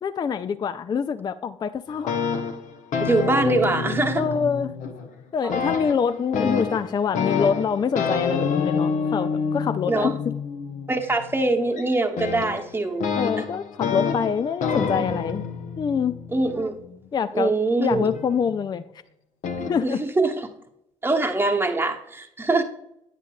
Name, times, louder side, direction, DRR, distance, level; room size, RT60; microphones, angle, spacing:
voice 1, 0.0-2.2 4.1-4.7 5.3-10.3 13.2-15.4 15.8-16.2 17.1-17.5 17.8-18.8 19.7-20.0, left 6 dB, 25° left, 12 dB, 0.4 m, -25 dB
sound 1, 1.9-5.2 5.5-17.1 17.9-18.7 19.4-19.8, left 5 dB, 50° left, 1.0 m, -28 dB
voice 2, 3.0-4.2 5.4-5.5 9.9-10.1 10.9-13.1 16.3-16.8 17.3-18.1 19.8-20.5 21.0-22.6, right 2 dB, 15° right, 4 dB, 1.1 m, -23 dB
9.7 x 8.2 x 2.4 m, 0.78 s
figure-of-eight pair, 55°, 17 cm